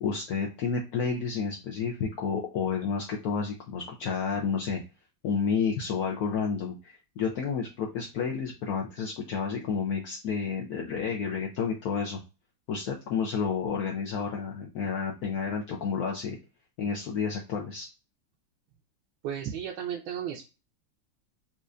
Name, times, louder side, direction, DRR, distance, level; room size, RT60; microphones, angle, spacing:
voice 1, 0.0-4.8 5.2-12.2 12.7-16.4 16.8-17.9, left 5 dB, 75° left, 0 dB, 0.8 m, -30 dB
voice 2, 19.2-20.5, right 9 dB, 75° right, 1 dB, 1.3 m, -34 dB
4.3 x 2.5 x 2.4 m, 0.29 s
omnidirectional pair, 2.3 m